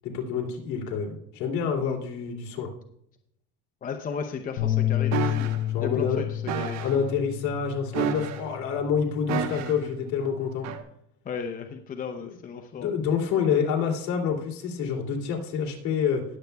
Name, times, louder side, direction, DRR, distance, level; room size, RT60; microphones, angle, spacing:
voice 1, 0.0-2.7 5.7-6.2 6.8-10.7 12.2-12.3 12.7-16.2, left 6 dB, 60° left, 0 dB, 2.9 m, -27 dB
voice 2, 3.8-6.8 11.2-12.9, left 6 dB, 25° left, 5 dB, 0.7 m, -35 dB
sound 1, 4.6-10.8, left 12 dB, 75° left, 3.2 m, -31 dB
sound 2, 5.1-5.6 6.5-7.0 7.9-8.6 9.3-9.9 10.6-10.8, right 7 dB, 55° right, 1.2 m, -30 dB
19.5 x 7.9 x 2.3 m, 0.75 s
cardioid pair, 130°, 33 cm